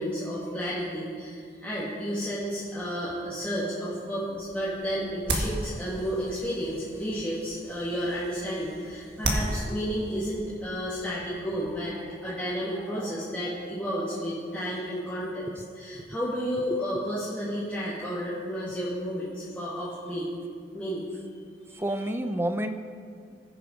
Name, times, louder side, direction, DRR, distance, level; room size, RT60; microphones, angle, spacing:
voice 1, 0.0-15.5 15.8-20.3 20.7-21.1 21.7-21.8, equal, 5° left, -10 dB, 1.9 m, -32 dB
sound 1, 4.2-11.9, right 1 dB, 60° right, 1.8 m, -36 dB
voice 2, 16.7-17.0 21.7-22.8, right 1 dB, 10° right, 8 dB, 0.5 m, -31 dB
19.5 x 6.7 x 5.2 m, 2.2 s
head